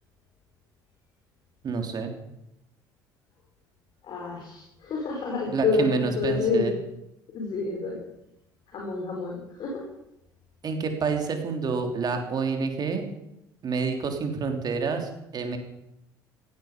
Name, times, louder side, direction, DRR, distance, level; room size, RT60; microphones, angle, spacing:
voice 1, 1.6-2.1 5.5-6.7 10.6-13.1 13.6-15.6, right 5 dB, 40° right, 4 dB, 3.3 m, -28 dB
voice 2, 4.0-6.8 7.3-8.0 8.7-9.8, left 4 dB, 45° left, -2 dB, 4.7 m, -28 dB
16.0 x 16.0 x 5.2 m, 0.85 s
figure-of-eight pair, 55°, 11 cm